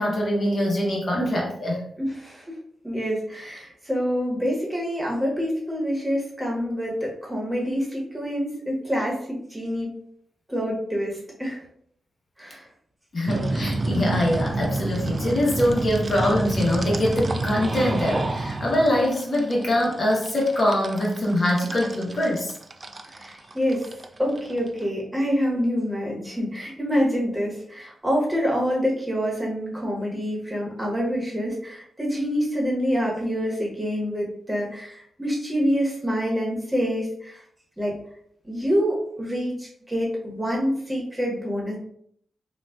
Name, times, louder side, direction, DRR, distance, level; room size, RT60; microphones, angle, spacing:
voice 1, 0.0-1.8 13.1-22.5, left 1 dB, 50° left, -3 dB, 1.0 m, -23 dB
voice 2, 2.0-2.6 2.8-9.9 10.5-11.6 12.4-12.7 23.1-23.9 24.2-37.4 37.8-37.9 38.4-41.8, equal, 10° right, -3 dB, 1.2 m, -26 dB
sound 1, 13.3-24.8, right 2 dB, 40° right, 0.3 m, -29 dB
3.8 x 2.3 x 2.4 m, 0.66 s
cardioid pair, 65°, 0 cm